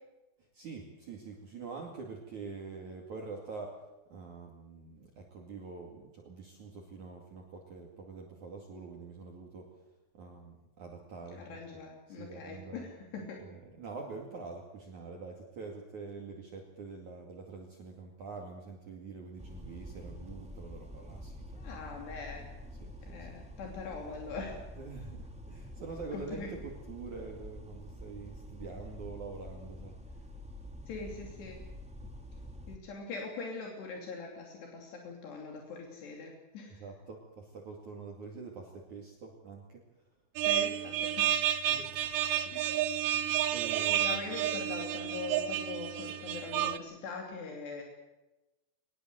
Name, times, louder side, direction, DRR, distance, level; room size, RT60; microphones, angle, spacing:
voice 1, 0.4-3.8 4.1-9.7 10.1-11.6 12.1-12.9 13.4-21.7 22.8-23.3 24.8-30.2 32.0-32.5 36.8-39.8 41.7-42.0 42.4-44.3, right 4 dB, 50° right, 1 dB, 3.4 m, -45 dB
voice 2, 11.3-13.4 21.6-22.5 23.1-24.6 26.1-26.5 30.9-31.6 32.7-36.9 40.4-41.5 42.5-42.7 43.9-47.8, left 4 dB, 75° left, 0 dB, 5.0 m, -42 dB
sound 1, 19.4-32.8, left 1 dB, 5° right, 1.1 m, -47 dB
sound 2, 40.4-46.8, right 11 dB, 75° right, 2.1 m, -31 dB
22.5 x 20.5 x 7.8 m, 1.0 s
omnidirectional pair, 4.9 m